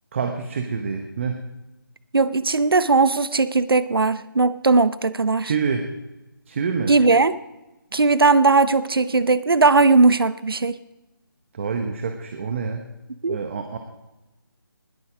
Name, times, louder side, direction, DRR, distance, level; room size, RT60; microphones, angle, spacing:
voice 1, 0.1-1.4 5.4-5.9 6.5-6.9 11.5-12.9 13.3-13.8, right 5 dB, 35° right, 6 dB, 1.0 m, -27 dB
voice 2, 2.1-5.5 6.9-7.4 7.9-10.8 13.2-13.4, right 3 dB, 85° right, 15 dB, 0.6 m, -18 dB
20.0 x 8.6 x 5.0 m, 1.0 s
figure-of-eight pair, 155°, 12 cm